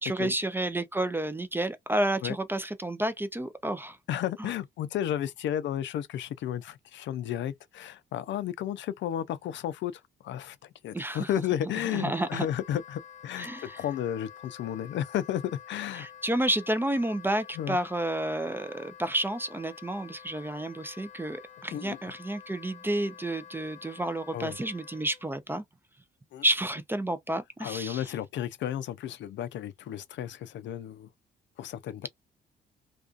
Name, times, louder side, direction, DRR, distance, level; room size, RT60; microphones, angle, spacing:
voice 1, 0.0-4.0 4.4-4.5 10.9-11.3 11.9-12.5 13.4-13.8 16.0-25.6 26.4-28.0, right 1 dB, 10° right, 0.4 m, -30 dB
voice 2, 4.1-10.6 10.8-15.4 15.7-16.1 17.6-17.8 21.7-22.0 24.3-24.6 26.3-26.4 27.6-31.1 31.6-32.1, left 11 dB, 70° left, 0.4 m, -33 dB
Wind instrument woodwind instrument, 12.0-25.2, left 9 dB, 35° left, 0.7 m, -49 dB
2.5 x 2.3 x 2.4 m
cardioid pair, 90°, 20 cm